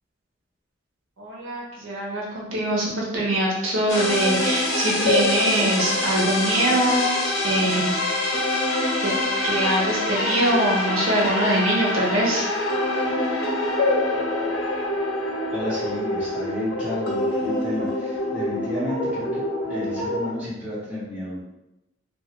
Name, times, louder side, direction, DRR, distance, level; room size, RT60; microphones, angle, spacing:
voice 1, 1.2-7.1 7.4-7.9 9.0-9.1 9.4-12.5, right 1 dB, 80° right, -4 dB, 0.8 m, -23 dB
sound 1, 3.9-20.3, left 1 dB, 85° left, 0.6 m, -25 dB
voice 2, 15.5-21.4, left 1 dB, 5° right, -11 dB, 1.1 m, -32 dB
2.7 x 2.3 x 2.9 m, 0.95 s
head